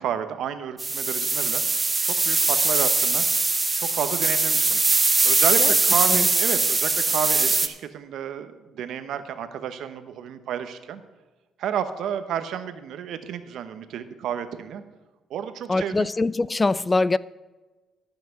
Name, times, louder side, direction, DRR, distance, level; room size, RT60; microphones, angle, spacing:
voice 1, 0.0-3.2 3.7-4.8 5.2-11.0 11.6-14.8 15.3-16.1, right 9 dB, 75° right, 1.0 m, -31 dB
sound 1, 0.8-7.7, right 3 dB, 25° right, 0.9 m, -21 dB
voice 2, 15.7-17.2, left 3 dB, 20° left, 0.3 m, -23 dB
13.0 x 5.9 x 6.9 m
cardioid pair, 90°, 0 cm